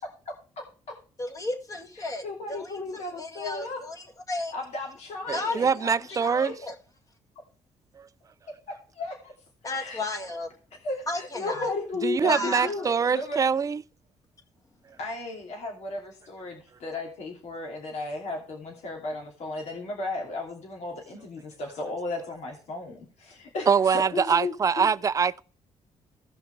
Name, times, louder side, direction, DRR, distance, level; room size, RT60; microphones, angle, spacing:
voice 1, 0.0-0.3 2.0-3.8 4.5-6.5 8.7-9.3 9.7-10.0 10.8-13.5 15.0-24.9, left 2 dB, 70° left, 2.8 m, -35 dB
voice 2, 1.2-4.5 5.3-5.8 6.6-6.7 9.6-10.5 11.1-11.7 12.2-12.7, left 2 dB, 30° left, 1.9 m, -33 dB
voice 3, 5.3-6.6 8.0-8.1 12.0-13.8 23.7-25.4, right 6 dB, 30° right, 0.4 m, -24 dB
16.5 x 5.7 x 3.3 m
cardioid pair, 115°, 12 cm